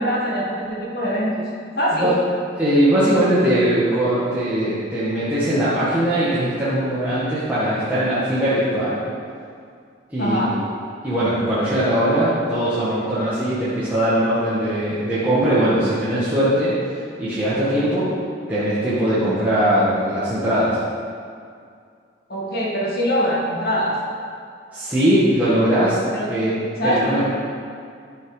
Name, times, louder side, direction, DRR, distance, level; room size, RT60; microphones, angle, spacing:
voice 1, 0.0-1.5 1.8-2.1 10.2-10.6 22.3-24.0 26.1-26.3 26.8-27.2, equal, 55° left, -4 dB, 1.8 m, -23 dB
voice 2, 2.6-9.0 10.1-10.6 11.0-18.1 18.5-20.8 24.7-26.0 26.3-26.5 26.8-27.2, right 1 dB, 10° right, -12 dB, 1.6 m, -20 dB
12.0 x 5.7 x 5.0 m, 2.3 s
head